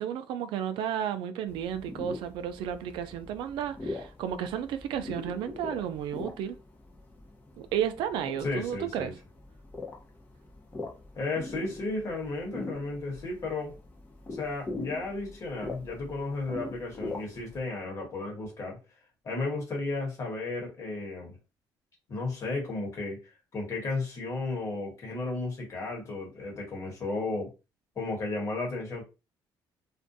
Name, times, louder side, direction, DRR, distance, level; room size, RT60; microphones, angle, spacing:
voice 1, 0.0-6.6 7.6-9.1, right 9 dB, 90° right, 0.4 m, -33 dB
sound 1, 1.5-17.6, left 2 dB, 20° left, 0.7 m, -42 dB
voice 2, 8.4-9.1 11.1-13.7 14.3-18.8 19.2-21.4 22.1-27.5 28.0-29.0, left 3 dB, 40° left, 1.2 m, -34 dB
2.5 x 2.1 x 2.6 m
cardioid pair, 140°, 8 cm